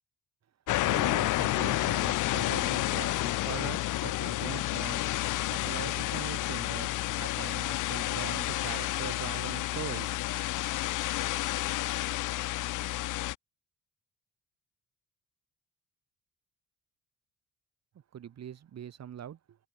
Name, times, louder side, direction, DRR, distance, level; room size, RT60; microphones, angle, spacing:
sound 1, 0.7-13.3, left 17 dB, 85° left, 1.0 m, -30 dB
voice 1, 0.8-10.2 18.1-19.6, right 9 dB, 60° right, 3.1 m, -42 dB
cardioid pair, 90°, 30 cm